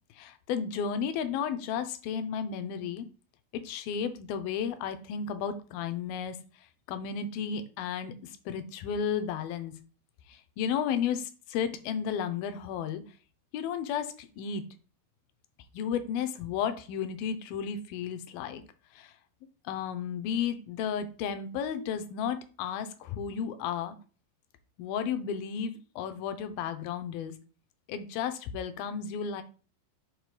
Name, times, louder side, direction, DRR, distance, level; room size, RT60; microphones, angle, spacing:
voice 1, 0.2-3.1 3.5-6.4 6.9-9.7 10.3-13.0 13.5-14.6 15.7-18.6 18.9-19.1 19.7-24.0 24.8-27.3 27.9-29.4, left 7 dB, 80° left, 10 dB, 2.5 m, -33 dB
6.7 x 3.7 x 4.8 m, 0.37 s
omnidirectional pair, 4.3 m